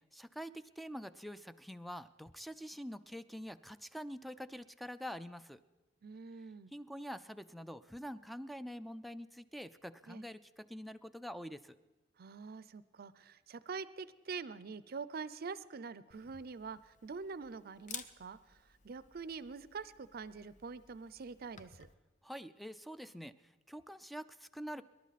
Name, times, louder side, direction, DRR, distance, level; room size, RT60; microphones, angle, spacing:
voice 1, 0.1-5.6 6.7-11.8 22.2-23.3 23.7-24.8, equal, ahead, 13 dB, 0.4 m, -46 dB
voice 2, 6.0-6.7 10.1-10.3 12.2-18.6 18.8-21.9, right 5 dB, 55° right, 16 dB, 0.5 m, -45 dB
Camera, 16.1-21.9, left 6 dB, 40° left, 0.7 m, -54 dB
27.0 x 11.5 x 4.1 m, 1.2 s
head